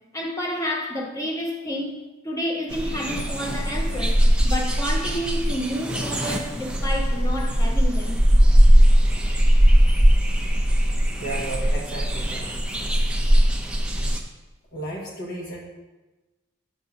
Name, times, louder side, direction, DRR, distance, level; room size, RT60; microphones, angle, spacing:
voice 1, 0.1-2.0 2.2-8.2, equal, 15° left, 0 dB, 0.8 m, -30 dB
sound 1, 2.7-14.2, equal, 5° right, 0.4 m, -19 dB
voice 2, 11.2-12.5 14.7-15.6, right 2 dB, 55° left, -2 dB, 1.0 m, -33 dB
7.4 x 2.7 x 5.8 m, 1.1 s
head